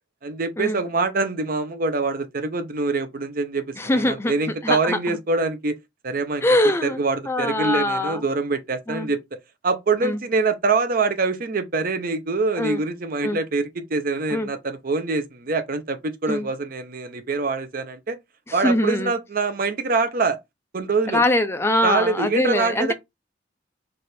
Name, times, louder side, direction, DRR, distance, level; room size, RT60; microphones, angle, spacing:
voice 1, 0.2-5.8 6.0-6.4 6.8-9.2 9.6-18.2 18.5-20.4 20.7-21.2 21.8-22.9, right 3 dB, 50° right, 0.6 m, -24 dB
voice 2, 3.8-4.3 4.6-5.2 6.4-7.0 7.2-8.2 8.9-9.1 10.0-10.2 12.6-12.8 13.2-13.4 14.3-14.5 16.3-16.5 18.5-19.1 21.1-22.9, left 1 dB, 15° left, 0.5 m, -23 dB
3.3 x 2.4 x 4.3 m
head